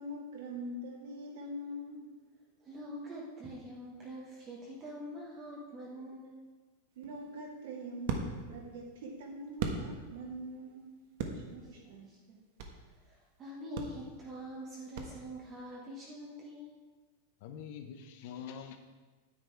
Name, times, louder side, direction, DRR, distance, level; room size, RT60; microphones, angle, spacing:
voice 1, 0.0-2.1 7.0-8.2 8.5-10.8 11.3-12.1, equal, 65° right, -3 dB, 2.5 m, -43 dB
voice 2, 2.6-6.4 11.6-11.7 12.0-12.4 13.0-16.7, equal, 20° right, -3 dB, 1.1 m, -45 dB
sound 1, 6.9-10.4 10.7-12.9 13.3-13.4 13.7-15.6, right 5 dB, 50° right, 1.3 m, -39 dB
voice 3, 17.4-18.8, left 7 dB, 45° left, 7 dB, 0.8 m, -45 dB
9.6 x 9.4 x 4.6 m, 1.3 s
supercardioid pair, 175°, 0 cm